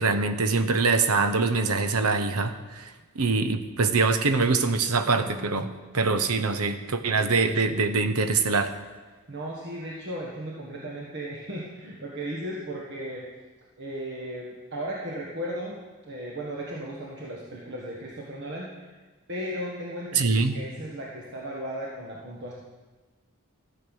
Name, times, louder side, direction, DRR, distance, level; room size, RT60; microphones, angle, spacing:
voice 1, 0.0-5.7 5.9-8.7 20.1-20.6, right 4 dB, 85° right, 9 dB, 0.9 m, -24 dB
voice 2, 9.3-13.3 13.8-18.9 19.3-22.5, right 1 dB, 50° right, -3 dB, 1.5 m, -36 dB
14.0 x 7.3 x 6.3 m, 1.3 s
head